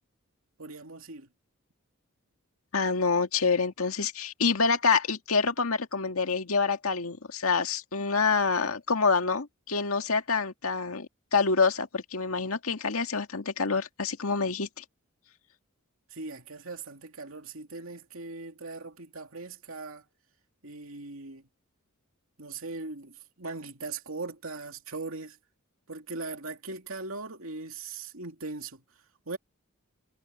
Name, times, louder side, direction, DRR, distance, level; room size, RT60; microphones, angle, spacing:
voice 1, 0.6-1.3 16.1-20.0 20.6-21.5 22.4-25.4 25.9-28.8 29.3-29.4, right 3 dB, 70° right, 2.8 m, -39 dB
voice 2, 2.7-14.8, left 4 dB, 85° left, 1.9 m, -27 dB
head